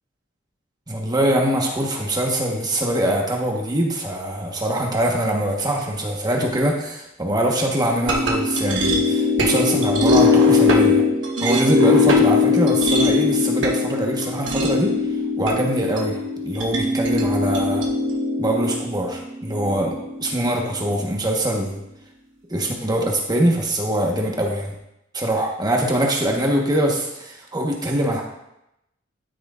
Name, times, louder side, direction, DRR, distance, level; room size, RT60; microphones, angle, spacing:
voice 1, 0.9-11.0 11.4-15.0 15.4-17.8 18.4-21.8 22.5-24.7 25.1-28.2, right 1 dB, 20° right, 0 dB, 1.2 m, -23 dB
sound 1, 8.0-20.4, left 3 dB, 70° right, 1.2 m, -20 dB
12.5 x 6.0 x 2.5 m, 0.84 s
head